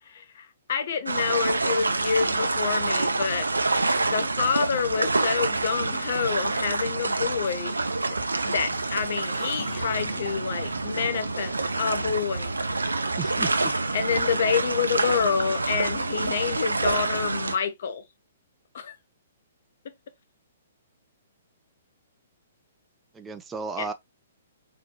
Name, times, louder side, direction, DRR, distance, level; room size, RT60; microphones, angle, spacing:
voice 1, 0.0-3.5 4.1-7.8 8.4-12.6 13.9-18.0 18.7-19.0 23.8-23.9, left 7 dB, 55° left, 0.9 m, -28 dB
sound 1, 1.1-17.6, right 3 dB, 80° right, 0.6 m, -27 dB
sound 2, 7.5-16.8, left 5 dB, 20° left, 2.0 m, -49 dB
voice 2, 13.2-13.7 23.1-23.9, right 5 dB, 10° right, 0.7 m, -34 dB
4.6 x 4.0 x 2.2 m
figure-of-eight pair, 120°, 0 cm